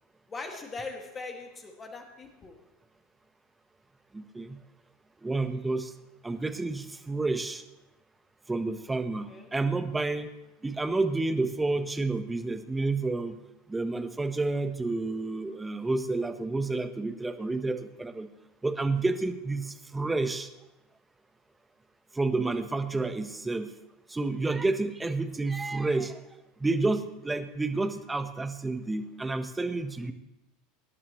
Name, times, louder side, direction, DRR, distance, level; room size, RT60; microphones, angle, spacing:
voice 1, 0.3-2.6 9.3-9.5 22.4-22.6, left 3 dB, 25° left, 3 dB, 2.1 m, -41 dB
voice 2, 4.1-4.6 5.2-5.9 6.2-7.6 8.5-10.3 10.6-13.4 13.7-18.3 18.6-20.5 22.1-23.7 24.1-26.1 26.6-30.1, right 3 dB, 10° right, 8 dB, 1.1 m, -30 dB
25.0 x 10.5 x 3.1 m, 0.97 s
figure-of-eight pair, 80°, 0 cm